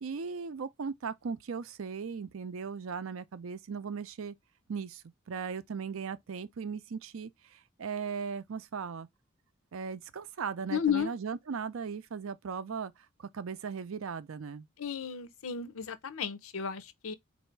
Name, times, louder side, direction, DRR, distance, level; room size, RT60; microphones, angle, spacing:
voice 1, 0.0-4.4 4.7-9.1 9.7-12.9 13.2-14.7, right 6 dB, 70° right, 0.5 m, -38 dB
voice 2, 10.7-11.1 14.8-17.1, left 8 dB, 80° left, 0.7 m, -33 dB
4.0 x 2.7 x 4.5 m
head